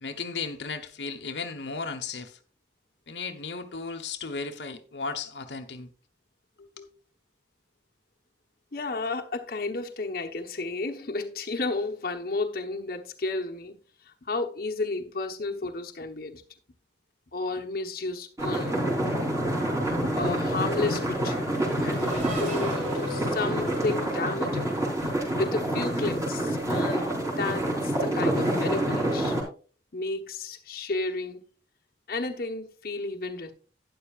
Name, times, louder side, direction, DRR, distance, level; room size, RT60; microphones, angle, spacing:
voice 1, 0.0-2.4 3.1-5.9 6.6-6.9, left 4 dB, 85° left, 1.1 m, -35 dB
voice 2, 8.7-13.8 14.0-16.4 17.3-18.8 20.1-21.5 21.8-24.7 25.0-29.5 29.9-31.4 32.1-33.5, left 3 dB, 55° left, 1.1 m, -32 dB
sound 1, 18.4-29.4, right 1 dB, 20° right, 3.5 m, -27 dB
Race car auto racing / Accelerating revving vroom, 19.7-25.3, left 1 dB, 50° right, 3.6 m, -41 dB
12.0 x 9.7 x 2.4 m
head